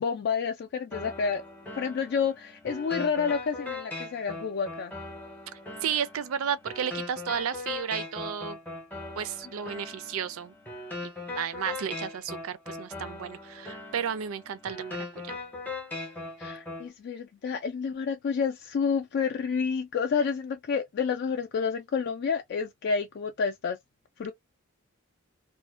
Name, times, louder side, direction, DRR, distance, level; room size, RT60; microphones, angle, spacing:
voice 1, 0.0-1.4 1.8-4.9 16.4-23.8 24.2-24.3, left 6 dB, 50° left, 0.3 m, -29 dB
sound 1, 0.9-16.9, left 2 dB, 10° left, 0.6 m, -40 dB
voice 2, 5.8-8.6 9.2-10.5 11.0-15.4, right 8 dB, 80° right, 0.4 m, -33 dB
2.5 x 2.1 x 2.3 m
head